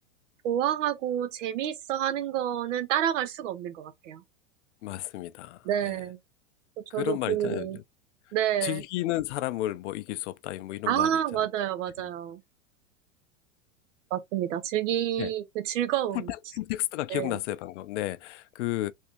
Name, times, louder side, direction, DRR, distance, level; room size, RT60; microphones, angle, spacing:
voice 1, 0.4-4.2 5.6-6.2 6.9-7.8 8.3-8.8 10.9-12.4 14.1-16.3 17.1-17.4, right 11 dB, 65° right, 0.9 m, -29 dB
voice 2, 4.8-6.0 6.9-7.8 8.6-11.1 15.2-15.3 16.1-18.9, left 15 dB, 60° left, 0.5 m, -32 dB
3.5 x 2.7 x 2.9 m
hypercardioid pair, 105°, 40 cm